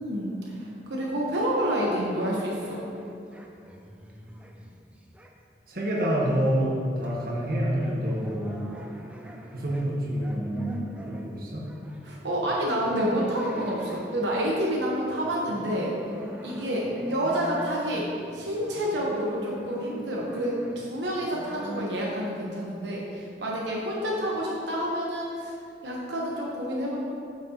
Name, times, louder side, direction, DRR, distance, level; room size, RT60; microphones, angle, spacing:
voice 1, 0.0-2.8 12.0-16.0 16.4-18.1 18.3-25.5 25.8-27.0, equal, 85° right, -4 dB, 1.1 m, -28 dB
sound 1, 2.4-5.5 5.7-21.8, equal, 5° right, 0.4 m, -43 dB
voice 2, 5.7-8.6 9.5-11.6, equal, 55° right, -4 dB, 1.3 m, -27 dB
8.8 x 6.1 x 2.9 m, 2.5 s
head